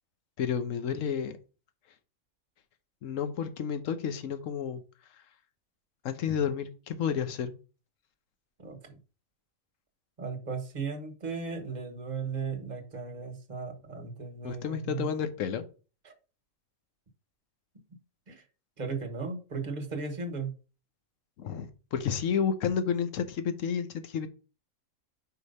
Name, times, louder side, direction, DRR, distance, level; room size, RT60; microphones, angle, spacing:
voice 1, 0.4-1.4 3.0-4.8 6.0-7.5 14.4-15.6 21.4-24.3, left 7 dB, 70° left, 1.2 m, -31 dB
voice 2, 8.6-9.0 10.2-15.1 16.0-16.1 18.3-18.4 18.8-20.5, right 5 dB, 35° right, 1.2 m, -36 dB
5.0 x 4.8 x 5.4 m
omnidirectional pair, 1.5 m